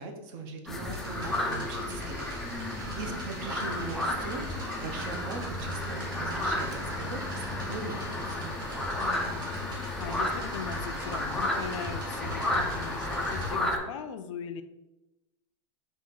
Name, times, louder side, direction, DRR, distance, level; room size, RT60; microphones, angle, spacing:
voice 1, 0.0-2.2 2.6-4.4 4.8-8.6, right 3 dB, 45° right, 6 dB, 0.6 m, -40 dB
sound 1, 0.7-13.8, left 1 dB, ahead, 0.3 m, -32 dB
sound 2, 0.9-13.5, right 1 dB, 25° right, 1.0 m, -43 dB
voice 2, 1.9-2.3 3.0-3.6 9.0-14.6, left 7 dB, 85° left, 10 dB, 0.4 m, -40 dB
4.1 x 2.6 x 3.7 m, 1.0 s
supercardioid pair, 155°, 16 cm